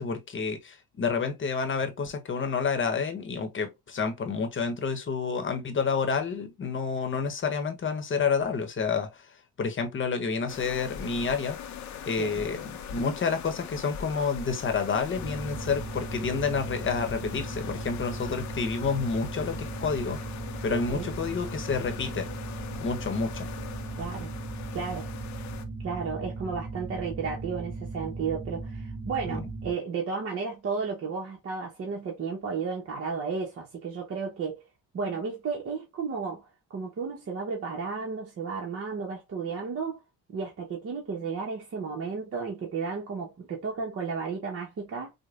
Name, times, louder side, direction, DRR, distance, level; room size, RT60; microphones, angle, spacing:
voice 1, 0.0-9.3 9.6-11.6 12.1-22.3 22.8-23.5 29.3-29.5, left 5 dB, 40° left, 0.9 m, -29 dB
sound 1, 10.5-25.6, left 7 dB, 70° left, 0.7 m, -41 dB
sound 2, 15.2-29.7, right 3 dB, 30° right, 1.6 m, -37 dB
voice 2, 20.7-21.1 24.0-24.3 24.7-25.1 25.8-34.6 34.9-40.0 40.3-45.1, right 5 dB, 50° right, 0.9 m, -33 dB
4.9 x 2.1 x 2.4 m
cardioid pair, 90°, 30 cm